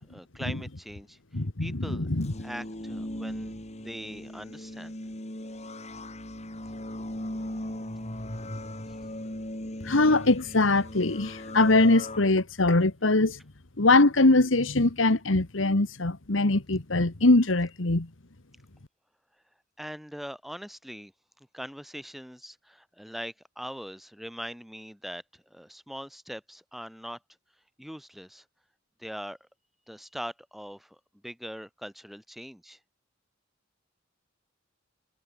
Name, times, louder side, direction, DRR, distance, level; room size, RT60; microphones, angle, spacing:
voice 1, 0.1-1.2 1.6-2.1 2.4-5.0 8.9-9.0 19.8-21.1 21.4-27.2 27.8-28.4 29.0-29.5 29.9-31.0 31.2-32.8, equal, ahead, 4.6 m, -41 dB
voice 2, 1.3-2.3 9.8-13.4 13.8-18.1, left 2 dB, 75° left, 1.6 m, -22 dB
sound 1, 2.2-12.2, left 1 dB, 35° left, 4.0 m, -38 dB
head